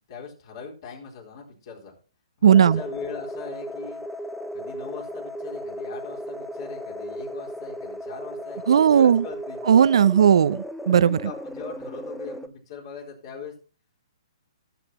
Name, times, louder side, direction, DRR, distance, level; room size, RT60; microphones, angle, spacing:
voice 1, 0.1-1.9 2.4-4.0 4.5-9.6 10.9-13.5, left 6 dB, 50° left, 4.2 m, -40 dB
sound 1, 2.4-12.5, equal, ahead, 0.6 m, -36 dB
voice 2, 2.4-2.8 8.7-9.2 9.7-11.2, right 8 dB, 65° right, 0.6 m, -16 dB
18.0 x 7.9 x 3.0 m
hypercardioid pair, 130°, 3 cm